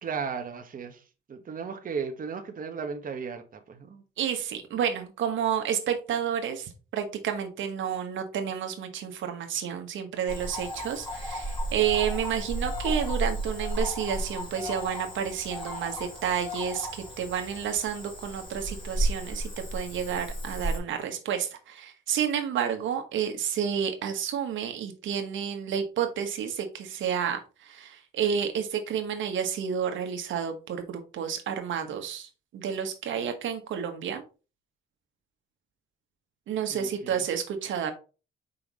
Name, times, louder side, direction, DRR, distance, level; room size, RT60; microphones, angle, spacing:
voice 1, 0.0-1.0 1.3-4.0 36.7-37.2, right 6 dB, 45° right, 1.2 m, -35 dB
voice 2, 4.2-34.2 36.5-37.9, right 8 dB, 75° right, 1.3 m, -30 dB
Cricket / Frog, 10.3-20.8, right 1 dB, 25° left, 3.1 m, -33 dB
5.6 x 5.2 x 4.1 m
cardioid pair, 90°, 20 cm